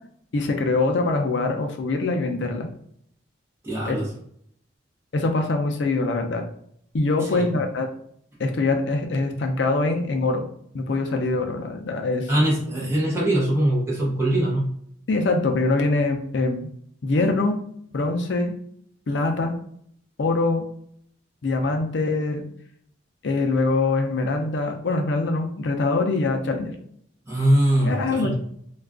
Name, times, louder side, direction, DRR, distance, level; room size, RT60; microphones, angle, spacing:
voice 1, 0.3-2.7 3.9-4.0 5.1-6.4 6.9-7.9 8.4-10.4 10.7-12.3 15.1-16.7 17.0-17.6 17.9-18.5 19.1-19.5 20.2-20.7 21.4-22.4 23.2-26.7 27.8-28.4, left 3 dB, 65° left, 4 dB, 0.4 m, -23 dB
voice 2, 3.6-4.0 7.2-7.4 12.3-14.7 27.3-28.4, right 1 dB, 15° right, -6 dB, 0.8 m, -22 dB
2.3 x 2.3 x 3.5 m, 0.67 s
head